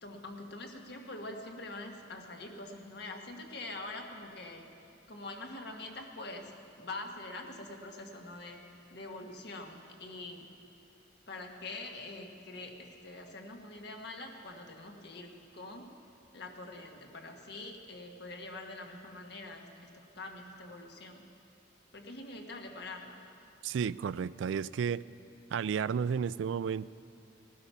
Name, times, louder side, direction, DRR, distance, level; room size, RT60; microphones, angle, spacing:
voice 1, 0.0-4.6 5.1-8.6 8.9-10.5 11.3-15.9 16.3-21.2 21.9-23.2, left 2 dB, 60° left, 3 dB, 1.5 m, -44 dB
voice 2, 23.6-25.0 25.5-26.9, right 7 dB, 85° right, 19 dB, 0.3 m, -32 dB
18.5 x 12.0 x 5.7 m, 2.7 s
head